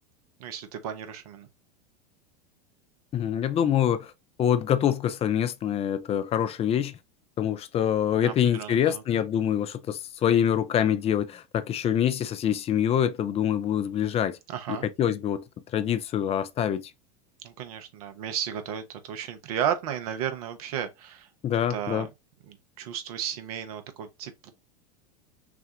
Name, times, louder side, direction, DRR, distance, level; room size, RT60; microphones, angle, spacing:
voice 1, 0.4-1.5 8.2-9.0 14.5-14.9 17.4-21.3 21.7-22.1 22.5-24.5, right 9 dB, 65° right, 1.0 m, -34 dB
voice 2, 3.1-4.1 4.4-6.9 7.4-14.4 15.0-15.4 15.7-16.9 21.4-22.1, left 9 dB, 30° left, 0.6 m, -25 dB
6.0 x 2.4 x 2.8 m
hypercardioid pair, 85°, 21 cm